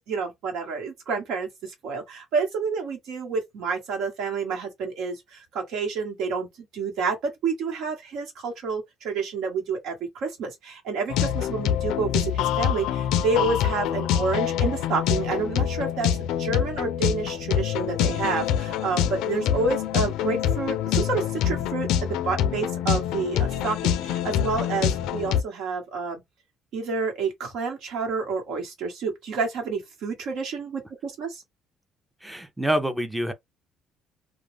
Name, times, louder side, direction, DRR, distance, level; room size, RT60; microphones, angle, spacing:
voice 1, 0.0-16.1 16.4-26.2 26.7-31.4, right 4 dB, 70° right, 1.1 m, -29 dB
sound 1, 11.1-25.4, left 9 dB, 85° left, 0.4 m, -25 dB
voice 2, 32.2-33.3, right 1 dB, 5° right, 0.5 m, -26 dB
2.4 x 2.1 x 3.2 m
cardioid pair, 120°, 0 cm